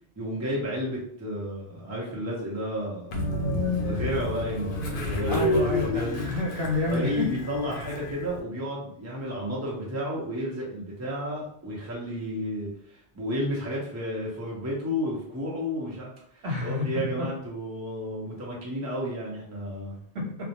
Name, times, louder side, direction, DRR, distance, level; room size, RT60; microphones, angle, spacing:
voice 1, 0.2-3.2 3.8-6.2 6.8-20.0, equal, 20° right, -4 dB, 0.6 m, -32 dB
Train, 3.1-8.4, left 2 dB, 75° left, 0.8 m, -29 dB
voice 2, 5.3-7.3 16.4-16.9 17.2-17.3 20.1-20.4, left 2 dB, 80° right, -3 dB, 1.1 m, -29 dB
2.4 x 2.0 x 2.8 m, 0.65 s
omnidirectional pair, 1.1 m